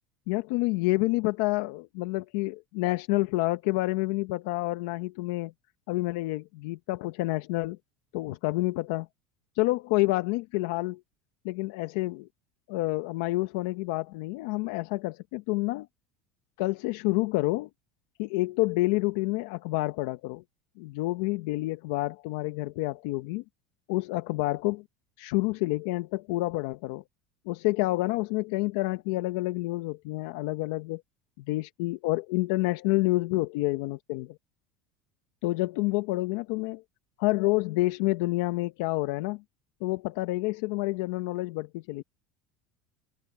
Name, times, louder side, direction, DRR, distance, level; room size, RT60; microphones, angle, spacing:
voice 1, 0.3-5.5 5.9-7.8 8.1-9.1 9.6-11.0 11.4-12.3 12.7-15.9 16.6-17.7 18.2-20.4 20.8-23.4 23.9-24.8 25.2-27.0 27.5-31.0 31.4-34.3 35.4-36.8 37.2-39.4 39.8-42.0, left 20 dB, 70° left, 1.0 m, -28 dB
cardioid pair, 150°, 0 cm